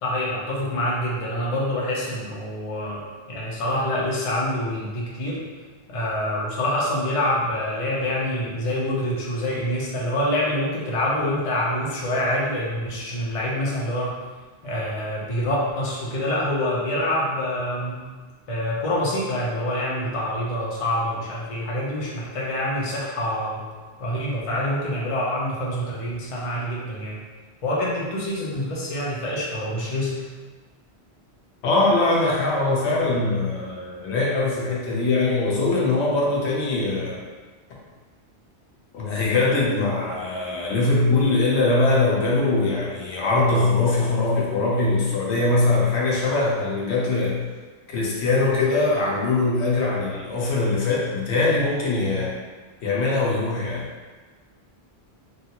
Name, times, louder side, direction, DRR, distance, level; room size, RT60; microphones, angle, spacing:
voice 1, 0.0-3.0 3.3-5.4 5.9-14.2 14.6-18.0 18.5-23.6 24.0-27.2 27.6-30.2, left 1 dB, 40° left, -5 dB, 0.6 m, -26 dB
voice 2, 31.6-37.2 38.9-47.4 47.9-52.4 52.8-53.9, left 2 dB, 90° left, -4 dB, 1.0 m, -22 dB
3.1 x 2.4 x 2.8 m, 1.4 s
omnidirectional pair, 1.1 m